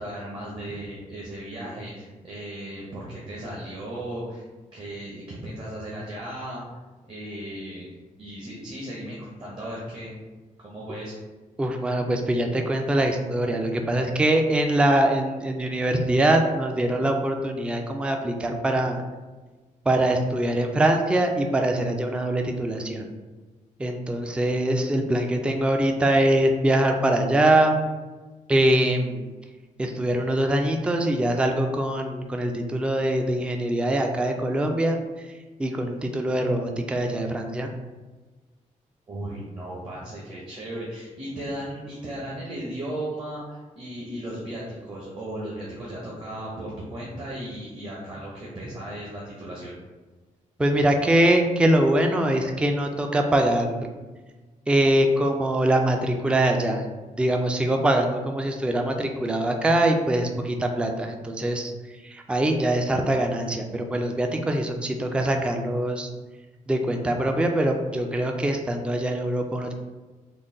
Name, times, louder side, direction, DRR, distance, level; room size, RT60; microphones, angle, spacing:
voice 1, 0.0-4.5 4.7-6.8 7.1-7.9 8.2-10.2 10.6-11.1 39.1-49.7, right 1 dB, 35° right, -5 dB, 0.8 m, -36 dB
voice 2, 11.6-19.0 19.9-23.1 23.8-27.8 28.5-29.3 29.8-35.0 35.2-35.3 35.6-37.7 50.6-54.0 54.7-56.9 57.2-66.1 66.7-69.7, right 1 dB, 10° right, 4 dB, 0.3 m, -23 dB
3.8 x 2.1 x 3.7 m, 1.3 s
cardioid pair, 135°, 14 cm